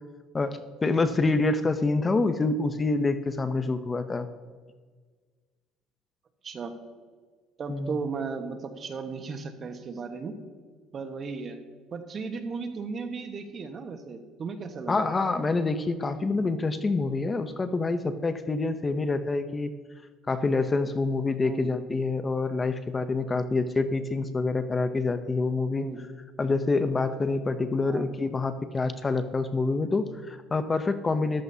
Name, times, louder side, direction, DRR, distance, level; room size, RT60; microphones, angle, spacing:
voice 1, 0.3-4.3 7.7-8.0 14.9-19.7 20.3-25.9 26.4-31.4, left 3 dB, 25° left, 10 dB, 0.7 m, -27 dB
voice 2, 7.6-10.4 10.9-11.6 11.9-15.1 21.4-21.7 25.7-26.0 27.8-28.1, right 4 dB, 40° right, 6 dB, 1.3 m, -35 dB
14.0 x 12.0 x 2.8 m, 1.5 s
supercardioid pair, 100°, 0 cm